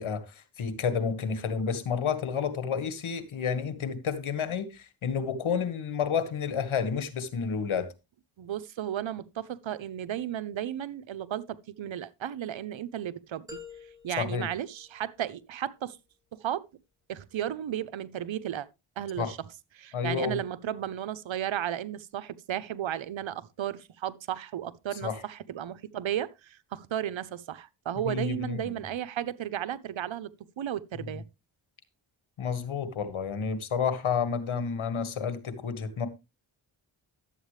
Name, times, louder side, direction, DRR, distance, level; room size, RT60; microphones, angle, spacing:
voice 1, 0.0-7.9 14.2-14.5 19.2-19.3 19.9-20.4 25.0-25.2 28.0-28.8 32.4-36.1, left 6 dB, 70° left, 1.6 m, -30 dB
voice 2, 8.4-13.5 14.0-16.0 16.3-16.7 17.1-18.7 19.0-19.5 19.7-31.2, right 11 dB, 65° right, 0.8 m, -34 dB
sound 1, 13.5-15.5, left 5 dB, 5° right, 3.0 m, -49 dB
12.0 x 8.2 x 3.2 m
cardioid pair, 60°, 49 cm